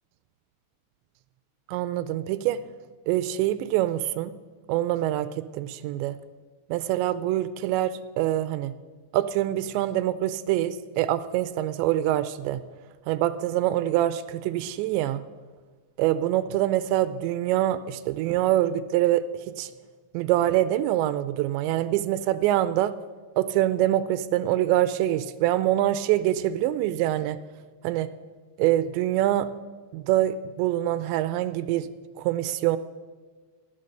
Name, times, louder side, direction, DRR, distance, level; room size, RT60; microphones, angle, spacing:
voice 1, 1.7-2.6 3.1-4.4 4.7-6.2 6.7-8.7 9.1-12.6 13.1-15.2 16.0-19.7 20.1-23.0 23.4-27.4 27.8-28.1 28.6-29.5 29.9-31.9 32.2-32.8, right 13 dB, 85° right, 14 dB, 2.7 m, -25 dB
15.0 x 11.5 x 6.6 m, 1.5 s
omnidirectional pair, 5.3 m